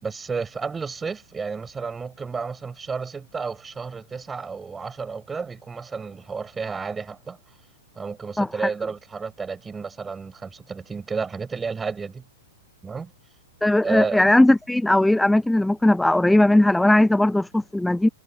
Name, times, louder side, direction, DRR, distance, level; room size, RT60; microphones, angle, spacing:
voice 1, 0.0-7.4 7.9-12.2 12.8-13.1 13.8-14.2, right 5 dB, 15° right, 4.5 m, -31 dB
voice 2, 8.4-8.7 13.6-18.1, left 1 dB, 5° left, 0.5 m, -18 dB
figure-of-eight pair, 100°, 0 cm